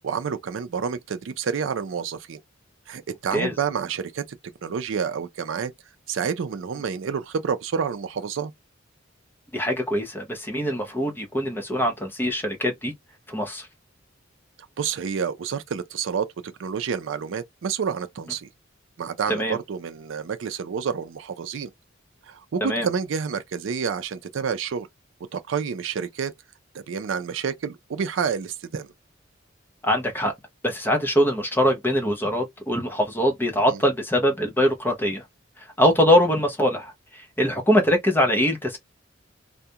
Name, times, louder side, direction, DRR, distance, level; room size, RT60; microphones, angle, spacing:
voice 1, 0.0-2.4 2.9-4.2 4.6-5.7 6.1-8.5 14.8-16.3 16.6-18.5 19.0-21.7 22.3-24.9 25.3-26.3 26.7-28.9 33.7-33.8, right 6 dB, 75° right, 0.4 m, -29 dB
voice 2, 9.5-12.9 13.3-13.7 19.3-19.6 22.6-22.9 29.8-30.3 30.6-35.2 35.8-38.8, equal, 10° left, 0.6 m, -23 dB
2.4 x 2.1 x 2.7 m
head